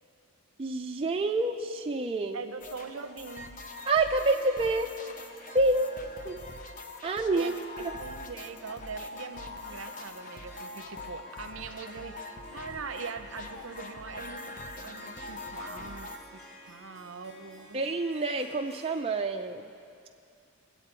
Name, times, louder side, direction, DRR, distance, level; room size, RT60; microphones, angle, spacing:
voice 1, 0.6-2.4 3.9-4.9 5.5-5.9 6.2-6.4 7.0-7.5 7.8-7.9 17.7-19.7, right 2 dB, 25° right, 2 dB, 0.4 m, -27 dB
voice 2, 2.3-3.5 7.3-14.6 14.8-17.8, right 5 dB, 70° right, 8 dB, 0.7 m, -42 dB
sound 1, 2.6-16.2, left 2 dB, 40° left, 0.7 m, -43 dB
Harp, 3.5-19.0, right 1 dB, 15° left, 2.5 m, -54 dB
21.5 x 8.2 x 4.5 m, 2.5 s
head